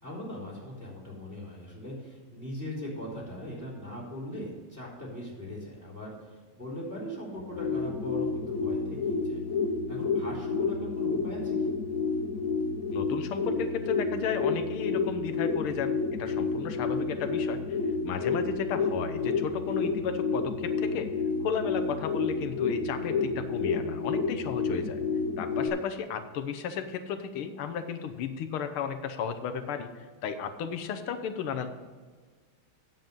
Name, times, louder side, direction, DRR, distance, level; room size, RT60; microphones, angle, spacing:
voice 1, 0.0-9.4 9.9-11.7, left 1 dB, 10° right, -5 dB, 3.5 m, -40 dB
sound 1, 7.3-25.7, left 4 dB, 50° left, 1.2 m, -30 dB
voice 2, 12.9-17.8 18.0-21.1 21.4-25.0 25.4-31.7, left 7 dB, 85° left, 8 dB, 1.8 m, -34 dB
9.1 x 7.8 x 5.4 m, 1.5 s
omnidirectional pair, 2.3 m